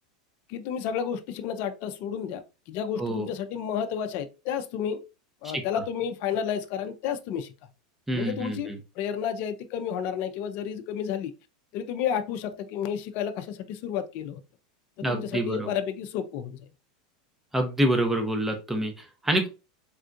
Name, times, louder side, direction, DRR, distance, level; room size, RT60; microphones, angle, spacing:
voice 1, 0.5-5.0 5.4-7.5 8.1-8.7 9.0-11.3 11.7-14.4 15.0-16.7, left 8 dB, 55° left, 0.4 m, -31 dB
voice 2, 8.1-8.8 15.0-15.7 17.5-19.5, right 1 dB, 5° right, 0.7 m, -27 dB
3.6 x 2.3 x 2.5 m
supercardioid pair, 115°, 4 cm